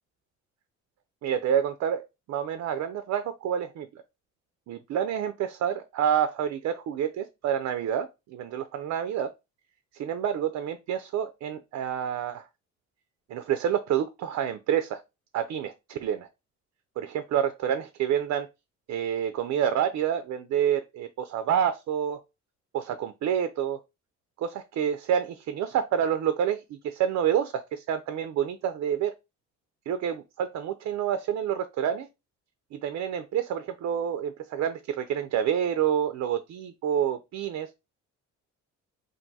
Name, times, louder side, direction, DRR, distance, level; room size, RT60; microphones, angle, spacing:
voice 1, 1.2-3.9 4.7-9.3 9.9-12.4 13.3-15.0 15.3-16.3 17.0-18.5 18.9-22.2 22.7-23.8 24.4-29.1 29.9-32.1 32.8-37.7, right 9 dB, 60° right, 0.4 m, -28 dB
2.6 x 2.3 x 3.9 m
cardioid pair, 90°, 30 cm